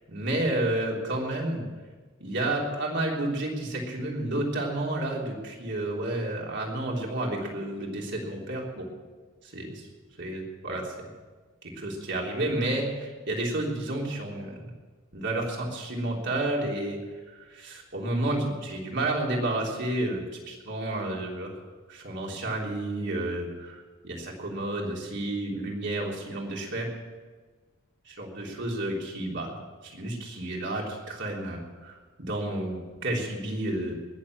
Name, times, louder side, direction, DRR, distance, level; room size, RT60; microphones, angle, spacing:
voice 1, 0.1-1.6 2.2-8.9 9.4-9.9 10.2-10.8 11.6-14.7 15.1-17.0 17.3-21.5 21.9-26.9 28.1-29.6 29.8-33.9, right 1 dB, 55° right, -1 dB, 3.5 m, -31 dB
20.0 x 7.4 x 8.6 m, 1.4 s
head